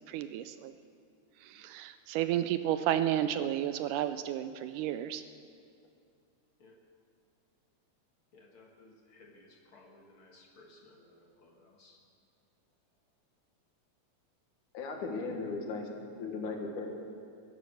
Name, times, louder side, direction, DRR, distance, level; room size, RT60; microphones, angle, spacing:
voice 1, 0.1-0.7 1.4-5.2, right 11 dB, 80° right, 11 dB, 1.9 m, -32 dB
voice 2, 8.3-12.0, left 2 dB, 50° left, 1 dB, 1.9 m, -59 dB
voice 3, 14.7-15.8 16.2-16.9, left 4 dB, 70° left, 2 dB, 3.0 m, -36 dB
22.5 x 9.6 x 6.4 m, 2.3 s
omnidirectional pair, 3.8 m